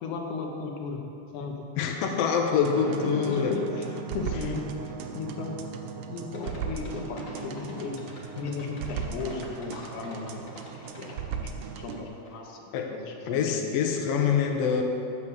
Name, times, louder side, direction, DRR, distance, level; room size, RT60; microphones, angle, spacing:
voice 1, 0.0-1.1 1.3-1.6 2.5-3.6 4.1-5.6 6.1-8.0 8.4-10.5 11.0-12.6 12.9-13.7, left 4 dB, 90° left, 1 dB, 2.6 m, -35 dB
voice 2, 1.8-3.5 12.7-12.9 13.3-14.8, left 7 dB, 70° left, 2 dB, 1.9 m, -25 dB
sound 1, 2.6-12.0, right 7 dB, 80° right, 2.1 m, -37 dB
sound 2, 6.3-11.9 12.2-12.3, left 2 dB, 35° left, 1.4 m, -47 dB
8.4 x 8.2 x 7.3 m, 3.0 s
omnidirectional pair, 3.3 m